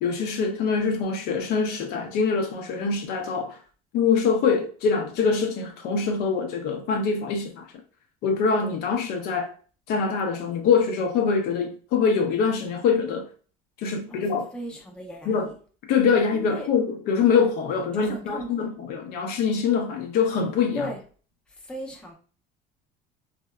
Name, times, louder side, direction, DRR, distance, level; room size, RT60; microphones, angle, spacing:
voice 1, 0.0-3.6 3.9-7.7 8.2-9.5 9.9-13.3 13.8-14.5 15.3-15.5 15.9-20.9, left 5 dB, 65° left, 0.5 m, -24 dB
voice 2, 14.1-15.6 16.3-16.7 17.9-18.7 20.7-21.0 21.5-22.1, equal, 5° left, 0.5 m, -37 dB
2.8 x 2.1 x 2.3 m
cardioid pair, 135°, 18 cm